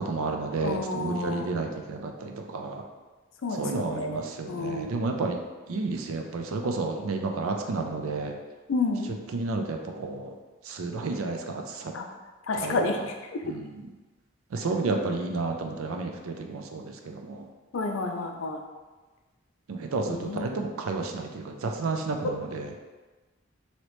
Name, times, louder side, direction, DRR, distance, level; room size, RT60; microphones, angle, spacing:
voice 1, 0.0-2.8 3.5-5.4 5.7-8.4 9.3-10.3 10.7-11.9 12.5-12.8 13.4-13.9 14.5-17.4 19.7-22.7, right 3 dB, 80° right, 4 dB, 0.4 m, -31 dB
voice 2, 0.6-1.5 3.4-5.0 8.7-9.1 11.9-12.1 12.5-13.0 13.3-13.4 17.7-18.6 20.1-20.6, left 3 dB, 70° left, 4 dB, 0.4 m, -30 dB
3.1 x 2.8 x 3.0 m, 1.3 s
head